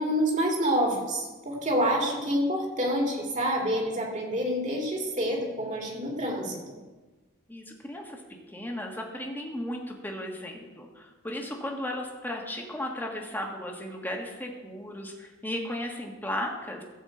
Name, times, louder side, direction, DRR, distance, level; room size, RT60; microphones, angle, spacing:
voice 1, 0.0-6.6, equal, 35° right, -1 dB, 2.7 m, -27 dB
voice 2, 7.5-8.2 8.5-16.8, left 1 dB, 10° left, 1 dB, 1.5 m, -35 dB
15.0 x 5.1 x 7.8 m, 1.2 s
head